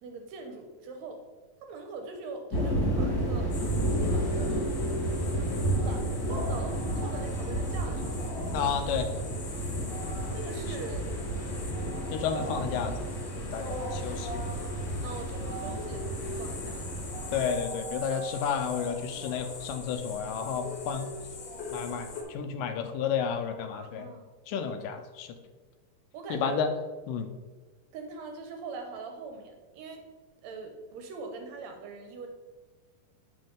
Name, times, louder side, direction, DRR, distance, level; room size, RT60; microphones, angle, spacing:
voice 1, 0.0-1.2 1.6-3.5 4.0-4.8 5.8-8.3 10.3-11.1 15.0-16.9 20.1-20.6 23.7-24.2 26.1-26.7 27.9-30.1 30.4-32.3, right 4 dB, 75° right, 4 dB, 1.7 m, -42 dB
sound 1, 2.5-17.5, right 1 dB, 35° left, 2.2 m, -32 dB
sound 2, 3.5-22.2, left 1 dB, 60° left, 2.0 m, -40 dB
voice 2, 8.5-9.1 12.1-12.9 13.3-14.4 17.3-21.1 21.7-24.1 24.5-25.3 26.3-26.7 27.1-27.3, left 7 dB, 90° left, 8 dB, 2.3 m, -31 dB
8.0 x 5.3 x 3.7 m, 1.3 s
omnidirectional pair, 3.8 m